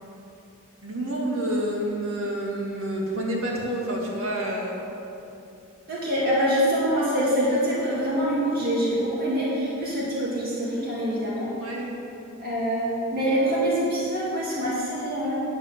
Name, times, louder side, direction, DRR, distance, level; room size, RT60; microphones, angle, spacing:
voice 1, 0.8-4.8 11.6-12.0, right 1 dB, 70° right, -3 dB, 2.3 m, -28 dB
voice 2, 5.9-11.5 12.4-15.4, equal, 45° right, -6 dB, 2.3 m, -25 dB
9.6 x 8.3 x 6.9 m, 2.8 s
head